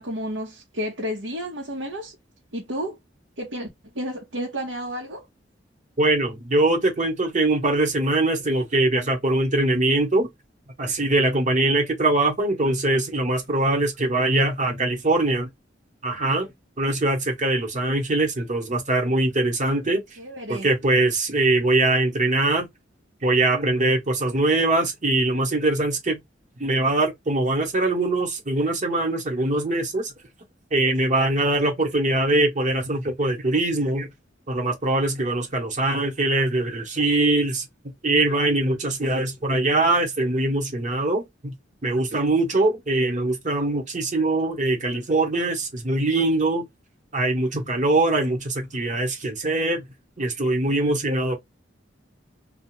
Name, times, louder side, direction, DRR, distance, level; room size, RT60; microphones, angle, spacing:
voice 1, 0.0-2.1 2.5-3.0 3.4-3.7 3.9-5.2 20.2-20.7, equal, 85° right, 1.0 m, -31 dB
voice 2, 6.0-10.3 10.8-15.5 16.0-16.5 16.8-20.0 20.5-22.7 23.2-26.2 26.6-30.1 30.7-34.1 34.5-37.6 38.0-41.5 41.8-46.7 47.1-49.8 50.2-51.4, right 2 dB, 40° right, 1.1 m, -22 dB
2.4 x 2.3 x 3.0 m
head